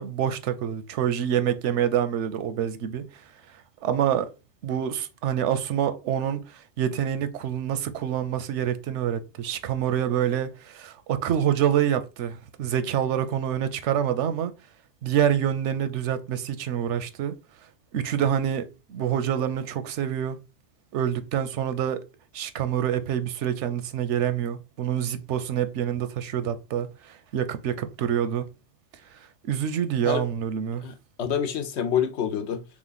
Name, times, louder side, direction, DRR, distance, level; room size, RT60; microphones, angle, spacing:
voice 1, 0.0-3.2 3.5-4.3 4.6-14.5 15.0-17.3 17.9-20.4 20.9-22.0 22.3-28.5 29.1-29.2 29.5-30.9, right 9 dB, 90° right, 0.9 m, -26 dB
voice 2, 30.8-32.6, left 8 dB, 75° left, 0.9 m, -27 dB
3.5 x 3.1 x 3.9 m
omnidirectional pair, 1.2 m